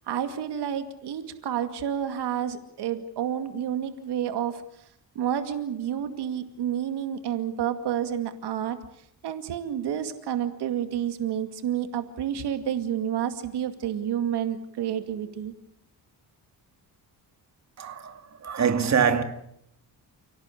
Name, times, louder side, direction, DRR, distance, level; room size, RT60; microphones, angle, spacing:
voice 1, 0.1-4.6 5.2-8.8 9.2-15.5, right 9 dB, 80° right, 2.4 m, -29 dB
voice 2, 17.8-19.2, right 7 dB, 45° right, 2.5 m, -24 dB
30.0 x 18.0 x 8.4 m
cardioid pair, 130°, 40 cm